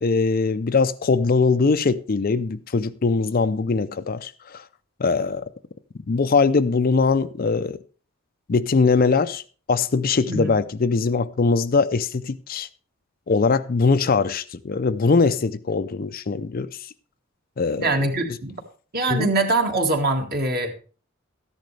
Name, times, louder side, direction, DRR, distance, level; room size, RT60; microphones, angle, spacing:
voice 1, 0.0-4.6 5.0-5.4 6.1-7.8 8.5-9.4 9.7-12.7 13.3-16.9 17.6-17.9 18.3-18.4 19.1-19.3, left 4 dB, 45° left, 0.5 m, -21 dB
voice 2, 17.8-18.6 18.9-20.7, right 2 dB, 45° right, 1.8 m, -23 dB
13.5 x 10.5 x 3.3 m
head